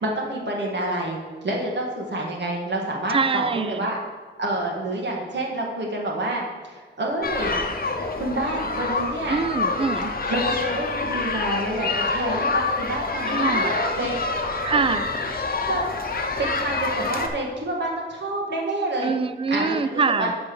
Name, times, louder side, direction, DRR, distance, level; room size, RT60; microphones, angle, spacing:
voice 1, 0.0-4.0 4.4-7.6 8.1-9.4 10.3-14.1 14.7-14.9 15.7-15.9 16.4-19.1 19.5-20.3, right 1 dB, 65° right, -2 dB, 1.7 m, -28 dB
voice 2, 3.1-3.8 9.3-10.1 13.3-13.8 14.6-15.1 19.0-20.3, right 5 dB, 30° right, 13 dB, 0.4 m, -24 dB
sound 1, 7.2-17.3, left 3 dB, 50° left, 0.9 m, -26 dB
6.9 x 5.3 x 6.7 m, 1.5 s
wide cardioid pair, 115°, 19 cm